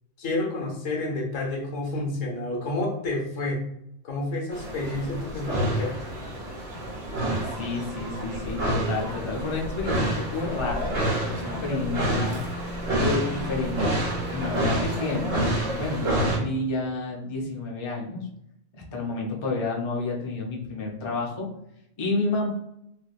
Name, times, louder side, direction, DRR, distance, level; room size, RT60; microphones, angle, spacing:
voice 1, 0.2-3.6 4.0-6.0, left 2 dB, 75° left, 0 dB, 1.2 m, -29 dB
sound 1, 4.5-16.4, right 1 dB, 90° right, 1.4 m, -28 dB
voice 2, 7.5-11.0 11.3-12.4 13.0-13.9 14.3-15.4 15.7-18.3 18.9-21.5 22.0-22.5, left 3 dB, 35° left, -2 dB, 0.5 m, -30 dB
3.4 x 2.7 x 2.4 m, 0.77 s
omnidirectional pair, 1.3 m